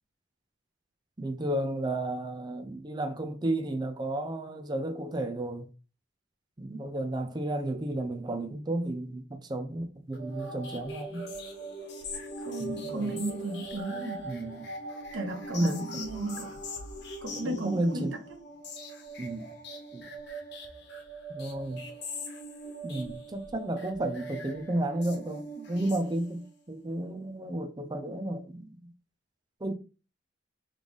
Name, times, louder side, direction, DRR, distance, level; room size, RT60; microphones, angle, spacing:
voice 1, 1.2-5.7 6.6-11.2 12.6-13.2 14.2-14.7 15.5-16.0 17.4-18.2 19.2-19.5 19.9-20.1 21.3-21.9 22.8-26.4 26.7-28.8 29.6-29.7, right 1 dB, 20° right, 0.5 m, -32 dB
sound 1, 10.1-26.6, right 1 dB, 60° left, 1.1 m, -41 dB
voice 2, 12.4-14.3 15.1-16.6 17.2-18.0, right 2 dB, 90° right, 0.8 m, -35 dB
3.8 x 3.2 x 3.5 m
head